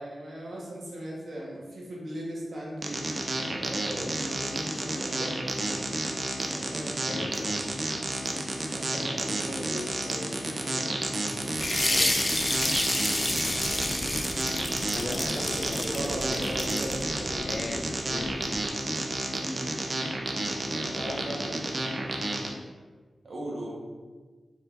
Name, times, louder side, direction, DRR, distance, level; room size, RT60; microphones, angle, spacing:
voice 1, 0.0-3.0 3.5-5.8 6.5-7.0 8.6-12.4 14.4-18.0 19.3-19.7 20.7-22.1 23.2-23.8, right 1 dB, 75° right, -5 dB, 1.4 m, -39 dB
sound 1, 2.8-22.5, right 2 dB, 55° right, 0.7 m, -31 dB
voice 2, 7.0-7.6 8.3-8.4 13.4-13.6 14.9-16.6 17.2-18.4 20.7-21.8, left 3 dB, 65° left, 8 dB, 0.4 m, -40 dB
sound 2, 11.5-17.0, left 1 dB, 35° left, 0.6 m, -29 dB
sound 3, 11.6-18.7, equal, 5° right, 0.4 m, -40 dB
5.2 x 3.7 x 2.7 m, 1.4 s
cardioid pair, 45°, 0 cm